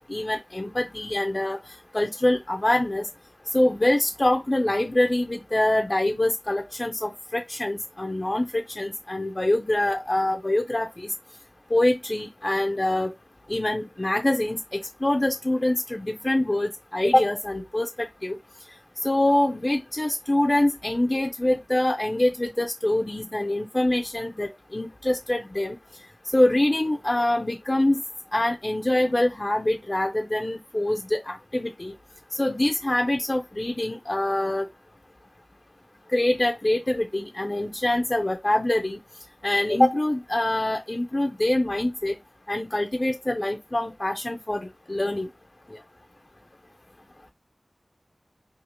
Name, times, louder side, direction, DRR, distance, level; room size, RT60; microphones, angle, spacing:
voice 1, 0.1-1.6 1.9-3.1 3.5-11.1 11.7-13.1 13.5-18.4 19.0-25.8 26.3-28.0 28.3-31.9 32.4-34.7 36.1-39.0 39.4-42.1 42.5-44.6 44.9-45.3, left 1 dB, 35° left, 0.4 m, -24 dB
2.6 x 2.4 x 2.8 m
wide cardioid pair, 50°, 0 cm